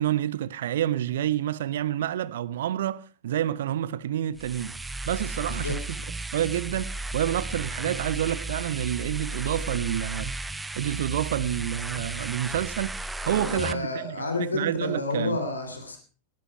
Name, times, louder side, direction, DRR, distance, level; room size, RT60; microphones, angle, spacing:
voice 1, 0.0-4.7 5.1-6.0 6.3-10.3 10.8-13.0 13.2-15.4, right 11 dB, 60° right, 0.8 m, -28 dB
sound 1, 4.3-13.7, right 2 dB, 10° right, 0.8 m, -34 dB
voice 2, 5.5-5.8 13.2-16.0, left 3 dB, 75° left, 3.3 m, -30 dB
19.5 x 11.5 x 4.7 m
figure-of-eight pair, 90°, 0 cm